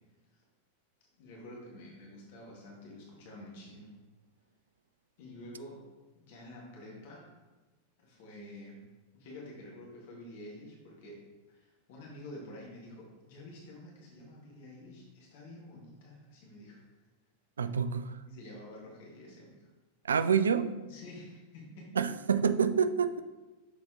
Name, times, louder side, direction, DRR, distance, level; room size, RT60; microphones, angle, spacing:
voice 1, 1.2-3.9 5.2-5.9 6.1-7.3 8.0-8.8 9.1-11.2 11.5-16.8 18.2-19.7 20.8-22.0, left 1 dB, 50° left, -3 dB, 1.7 m, -49 dB
voice 2, 17.6-18.2 20.1-20.7 22.0-23.2, right 6 dB, 70° right, 12 dB, 0.3 m, -27 dB
6.6 x 4.0 x 3.8 m, 1.2 s
figure-of-eight pair, 90°, 0 cm